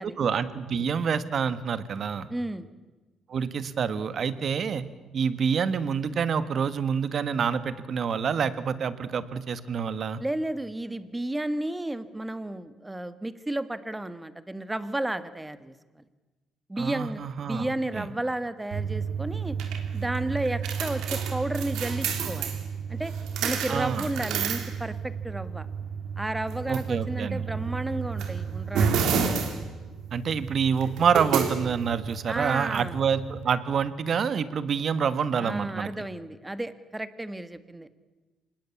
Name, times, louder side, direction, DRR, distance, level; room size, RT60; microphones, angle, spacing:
voice 1, 0.2-2.3 3.3-4.8 5.1-10.2 16.8-18.1 23.7-24.1 26.7-27.5 30.1-35.9, right 6 dB, 55° right, 13 dB, 1.6 m, -27 dB
voice 2, 2.3-2.7 10.2-16.0 16.7-19.6 19.9-22.6 22.9-23.1 23.4-25.7 26.2-29.2 32.3-33.0 35.4-37.9, right 1 dB, 10° right, 12 dB, 1.6 m, -32 dB
sound 1, 18.7-33.4, right 6 dB, 85° right, 3.4 m, -31 dB
26.0 x 20.0 x 8.5 m, 1.2 s
cardioid pair, 90°, 0 cm